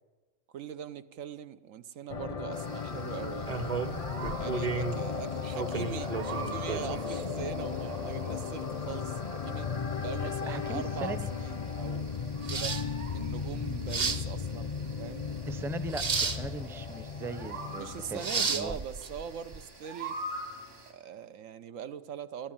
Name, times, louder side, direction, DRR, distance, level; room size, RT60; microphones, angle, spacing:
voice 1, 0.5-3.7 4.4-9.7 10.0-12.8 13.1-15.3 17.8-20.2 20.9-22.5, right 8 dB, 85° right, 11 dB, 1.2 m, -41 dB
sound 1, 2.1-18.6, left 6 dB, 40° left, 0.6 m, -36 dB
sound 2, 2.5-20.9, right 3 dB, 70° right, 3.7 m, -46 dB
sound 3, 3.4-19.6, right 5 dB, 35° right, 0.8 m, -36 dB
voice 2, 10.2-11.3 15.5-18.8, right 2 dB, 5° right, 13 dB, 0.5 m, -39 dB
27.0 x 12.0 x 8.9 m, 1.3 s
omnidirectional pair, 1.3 m